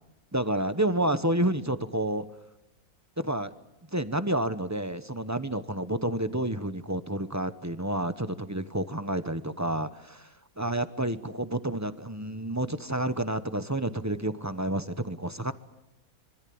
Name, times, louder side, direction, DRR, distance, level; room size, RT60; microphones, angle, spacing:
voice 1, 0.3-2.2 3.2-3.5 3.9-10.3 10.6-15.5, right 1 dB, 15° right, 11 dB, 0.9 m, -29 dB
26.0 x 24.5 x 8.8 m, 0.89 s
omnidirectional pair, 1.6 m